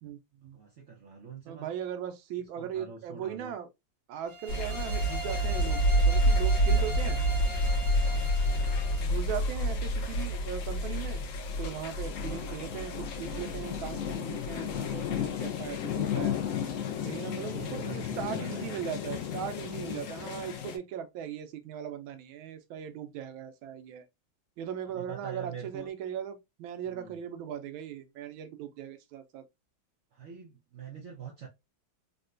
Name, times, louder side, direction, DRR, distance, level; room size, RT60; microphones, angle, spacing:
voice 1, 0.0-0.6 1.4-3.7 4.1-7.2 9.0-11.2 11.6-16.3 17.0-24.0 24.6-29.4, right 9 dB, 90° right, 1.4 m, -39 dB
voice 2, 0.5-1.7 2.6-3.5 7.2-7.5 8.4-8.8 17.4-18.8 24.9-25.9 26.8-27.2 30.1-31.5, right 6 dB, 60° right, 0.7 m, -45 dB
sound 1, 4.3-9.1, left 2 dB, 30° right, 0.8 m, -40 dB
sound 2, 4.5-20.8, left 9 dB, 85° left, 0.6 m, -37 dB
sound 3, 4.5-15.2, right 1 dB, 55° left, 1.2 m, -28 dB
3.9 x 2.2 x 2.4 m
omnidirectional pair, 2.1 m